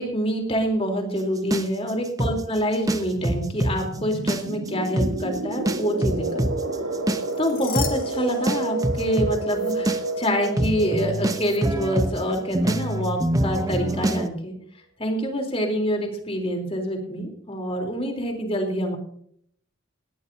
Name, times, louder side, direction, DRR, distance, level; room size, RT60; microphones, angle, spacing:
voice 1, 0.0-6.5 7.4-14.5 15.0-19.0, equal, 30° left, 2 dB, 3.5 m, -26 dB
sound 1, 1.5-3.8 4.1-4.7 5.0-5.1 5.7-14.3, right 1 dB, 15° right, 0.8 m, -25 dB
sound 2, 2.9-13.4, right 2 dB, 75° right, 1.6 m, -31 dB
sound 3, 7.1-9.2 9.5-9.7 11.4-11.6, left 10 dB, 45° left, 1.8 m, -37 dB
19.5 x 16.0 x 2.7 m, 0.64 s
head